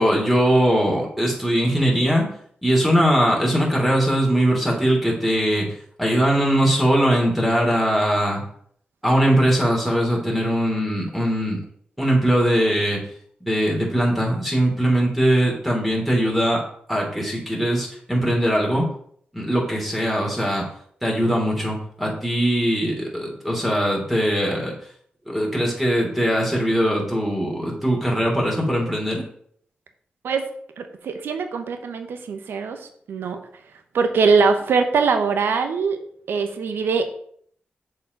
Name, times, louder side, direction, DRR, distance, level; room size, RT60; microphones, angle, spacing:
voice 1, 0.0-2.2 2.6-5.7 6.0-8.4 9.0-11.6 12.0-13.0 13.4-16.6 16.9-18.9 19.3-20.6 21.0-24.7 25.3-29.2, equal, 5° right, -2 dB, 2.9 m, -21 dB
voice 2, 30.8-32.8 33.1-33.4 33.9-36.0 36.3-37.0, right 5 dB, 90° right, 7 dB, 1.0 m, -22 dB
6.9 x 4.9 x 5.3 m, 0.63 s
cardioid pair, 60°, 4 cm